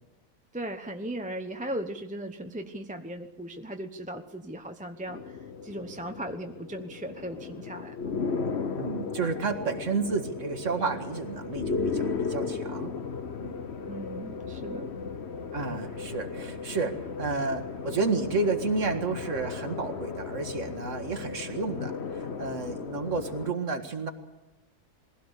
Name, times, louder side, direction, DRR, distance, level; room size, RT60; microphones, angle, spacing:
voice 1, 0.5-5.4 5.6-8.1 8.5-8.6 13.9-14.9, right 1 dB, 5° right, 5 dB, 0.8 m, -37 dB
sound 1, 5.1-23.5, left 5 dB, 50° left, 1.3 m, -35 dB
voice 2, 8.8-12.9 13.4-13.5 15.5-24.1, right 4 dB, 55° right, 6 dB, 2.1 m, -31 dB
22.0 x 16.5 x 8.2 m, 1.1 s
omnidirectional pair, 1.5 m